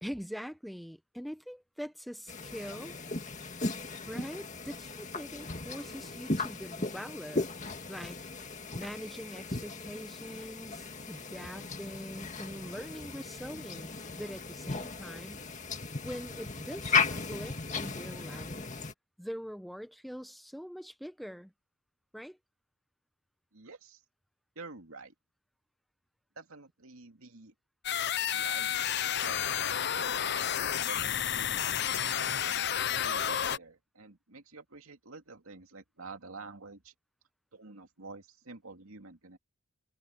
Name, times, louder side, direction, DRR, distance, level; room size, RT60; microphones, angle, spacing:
voice 1, 0.0-3.0 4.1-7.5 7.9-8.2 8.7-15.5 16.0-18.7 19.2-21.5 22.1-22.4, equal, ahead, 0.9 m, -43 dB
sound 1, 2.3-18.9, left 4 dB, 35° left, 2.1 m, -36 dB
voice 2, 23.5-24.0 24.6-25.1 26.4-27.5 28.3-28.8 29.2-32.5 33.0-36.9 37.5-39.4, right 3 dB, 80° right, 2.5 m, -49 dB
sound 2, 27.8-33.6, left 9 dB, 50° left, 0.7 m, -31 dB
head